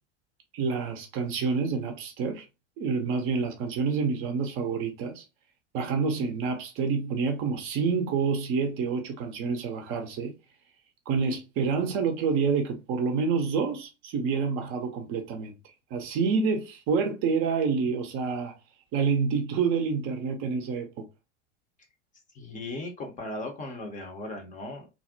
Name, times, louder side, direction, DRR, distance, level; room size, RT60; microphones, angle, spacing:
voice 1, 0.5-2.5 2.8-5.2 5.7-10.3 11.1-15.5 15.9-18.5 18.9-21.0, right 5 dB, 35° right, 0.5 m, -28 dB
voice 2, 22.3-24.9, left 2 dB, 20° left, 0.5 m, -37 dB
2.5 x 2.0 x 2.5 m
figure-of-eight pair, 80°, 36 cm